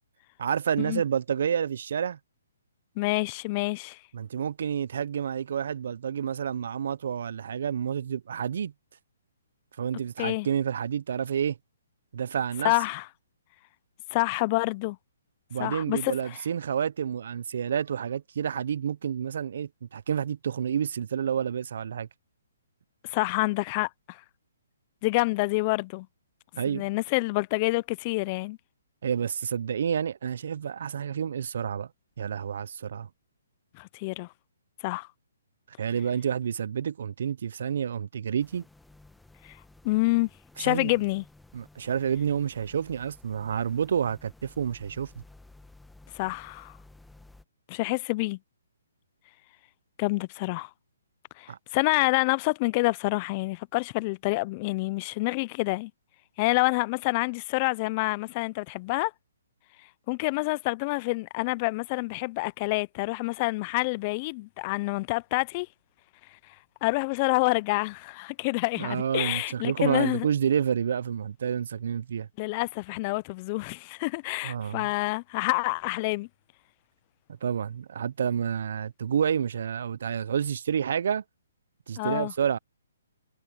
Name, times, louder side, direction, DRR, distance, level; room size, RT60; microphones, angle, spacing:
voice 1, 0.4-2.2 4.1-8.7 9.8-11.6 12.1-12.7 15.5-22.1 26.6-26.9 29.0-31.9 32.2-33.1 35.8-38.6 40.6-40.9 41.5-45.2 51.5-51.6 68.8-72.3 74.4-74.9 77.3-81.2 81.9-82.6, right 8 dB, 60° right, 0.5 m, -29 dB
voice 2, 3.0-4.0 10.2-10.5 12.6-13.1 14.1-15.0 15.6-16.2 23.0-24.2 25.0-26.1 26.7-28.6 33.8-34.3 34.8-35.1 39.4-39.5 39.8-40.3 40.6-41.2 46.1-46.7 47.7-48.4 50.0-50.7 51.4-55.9 56.4-59.1 60.1-65.7 66.8-70.3 72.4-76.3 82.0-82.3, left 25 dB, 30° left, 0.4 m, -27 dB
sound 1, 38.4-47.4, left 2 dB, 5° left, 1.0 m, -54 dB
hypercardioid pair, 155°, 0 cm